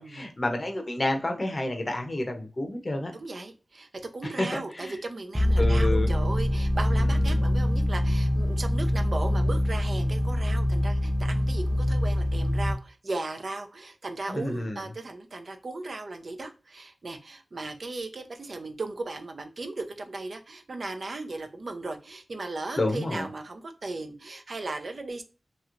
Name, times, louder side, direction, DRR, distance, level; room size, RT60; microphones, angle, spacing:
voice 1, 0.0-3.1 4.4-4.9 5.6-6.1 7.2-7.4 14.3-14.8 22.8-23.3, left 1 dB, 40° left, 0.7 m, -29 dB
voice 2, 3.1-3.9 4.1-25.2, right 2 dB, 65° right, 0.5 m, -37 dB
sound 1, 5.3-12.7, left 1 dB, 5° right, 0.7 m, -24 dB
3.0 x 2.8 x 2.4 m
cardioid pair, 50°, 0 cm